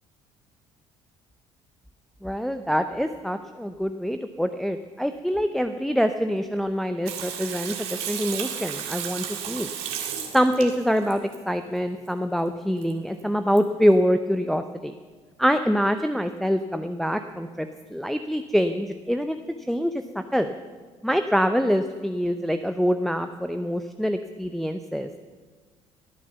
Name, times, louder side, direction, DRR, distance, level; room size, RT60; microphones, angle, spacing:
voice 1, 2.2-9.7 10.3-14.9 15.4-19.4 19.7-20.5 21.0-25.1, equal, ahead, 8 dB, 0.7 m, -25 dB
Water tap faucet / Sink (filling or washing), 7.1-11.4 12.8-12.9 13.2-13.3 13.6-13.7, right 9 dB, 75° right, 2.0 m, -33 dB
16.5 x 9.5 x 7.0 m, 1.5 s
hypercardioid pair, 60°, 15 cm